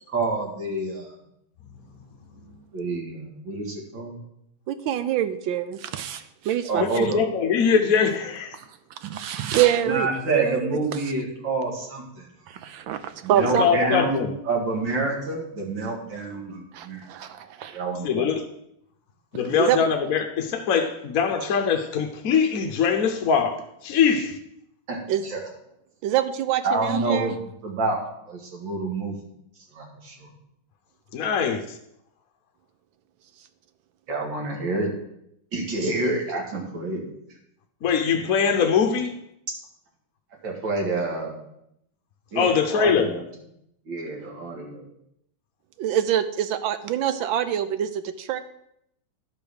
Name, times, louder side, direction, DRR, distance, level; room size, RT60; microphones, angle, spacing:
voice 1, 0.1-1.1 2.7-4.2 6.7-7.2 9.8-12.6 13.2-17.0 17.7-18.3 24.9-25.5 26.6-28.0 28.3-29.2 29.7-30.3 34.1-34.9 35.5-37.0 40.4-41.3 42.3-43.2 43.9-44.9, right 3 dB, 60° right, 2.8 m, -28 dB
voice 2, 4.7-6.8 8.6-8.7 9.0-10.1 10.3-10.8 12.5-13.9 16.7-17.8 19.4-19.8 25.1-25.3 26.0-27.4 31.2-31.3 45.8-48.4, right 11 dB, 75° right, 1.3 m, -25 dB
voice 3, 6.8-8.6 13.6-14.3 18.0-18.4 19.3-24.4 31.1-31.6 37.8-39.1 42.4-43.1, left 6 dB, 60° left, 1.0 m, -22 dB
11.5 x 5.2 x 6.4 m
omnidirectional pair, 2.3 m